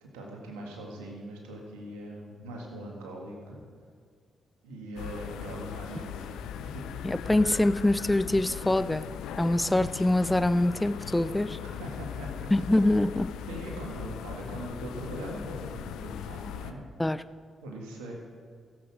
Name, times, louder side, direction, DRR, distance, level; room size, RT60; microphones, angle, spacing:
voice 1, 0.0-3.6 4.6-6.9 11.6-12.5 13.5-16.8 17.6-18.2, right 1 dB, 85° right, 1.9 m, -41 dB
sound 1, 5.0-16.7, left 9 dB, 75° left, 0.5 m, -39 dB
voice 2, 7.0-9.0 9.4-11.6 12.5-13.3 17.0-17.2, left 1 dB, 15° left, 0.5 m, -24 dB
15.5 x 7.9 x 4.9 m
hypercardioid pair, 40°, 0 cm